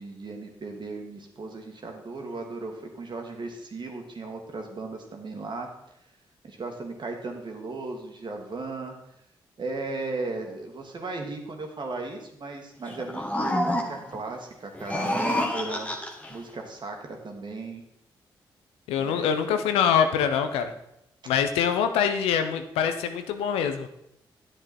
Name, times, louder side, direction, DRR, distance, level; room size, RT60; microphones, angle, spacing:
voice 1, 0.0-5.7 6.4-8.9 9.6-15.9 16.3-17.8 19.0-19.2, right 3 dB, 55° right, 3 dB, 2.2 m, -36 dB
sound 1, 12.9-14.2 14.7-16.4, left 1 dB, 15° left, 1.6 m, -28 dB
voice 2, 18.9-20.7 21.3-23.9, left 7 dB, 90° left, 8 dB, 0.8 m, -24 dB
9.8 x 7.8 x 4.4 m, 0.81 s
supercardioid pair, 45°, 10 cm